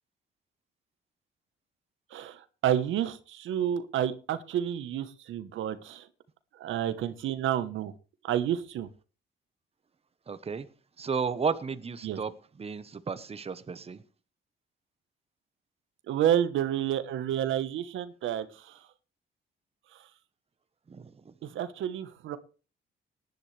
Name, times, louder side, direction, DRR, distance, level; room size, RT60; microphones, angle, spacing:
voice 1, 2.1-6.1 6.5-7.9 8.2-8.9 12.0-12.2 16.1-18.8 19.9-20.0 21.4-22.4, right 10 dB, 80° right, 1.2 m, -30 dB
voice 2, 10.3-10.7 11.0-12.3 12.6-14.0 20.9-21.3, right 5 dB, 30° right, 1.1 m, -33 dB
18.5 x 11.0 x 3.3 m
cardioid pair, 90°, 20 cm